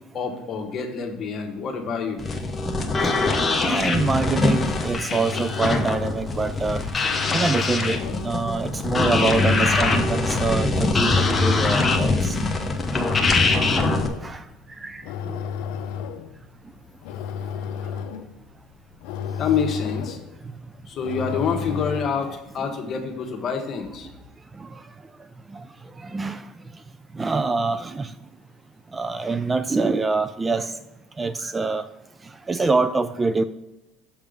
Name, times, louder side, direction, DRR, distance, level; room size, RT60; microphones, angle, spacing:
voice 1, 0.1-2.2 19.4-20.2 20.9-24.1, left 6 dB, 45° left, 3 dB, 1.3 m, -27 dB
sound 1, 2.2-14.1, left 3 dB, 25° left, 0.9 m, -23 dB
voice 2, 3.6-6.8 7.3-12.4 14.2-14.4 14.8-15.4 22.2-22.7 24.6-24.7 25.5-25.6 26.0-26.4 27.1-28.1 28.9-30.7 31.2-31.9 32.5-33.4, right 3 dB, 20° right, 12 dB, 0.4 m, -25 dB
sound 2, 5.0-22.4, left 7 dB, 75° left, 0.6 m, -33 dB
7.0 x 3.6 x 5.0 m, 1.0 s
supercardioid pair, 85°, 0 cm